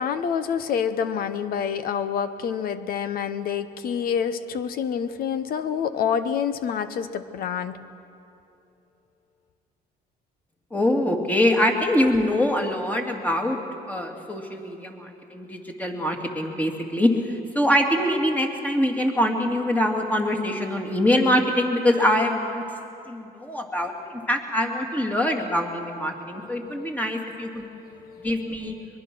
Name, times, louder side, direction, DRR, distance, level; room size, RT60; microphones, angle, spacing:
voice 1, 0.0-7.8 27.6-28.3, left 7 dB, 60° left, 11 dB, 1.0 m, -27 dB
voice 2, 10.7-13.6 13.9-22.6 23.1-27.6 28.2-28.7, left 1 dB, 10° left, 2 dB, 2.4 m, -24 dB
22.5 x 22.5 x 6.2 m, 2.7 s
cardioid pair, 110°, 17 cm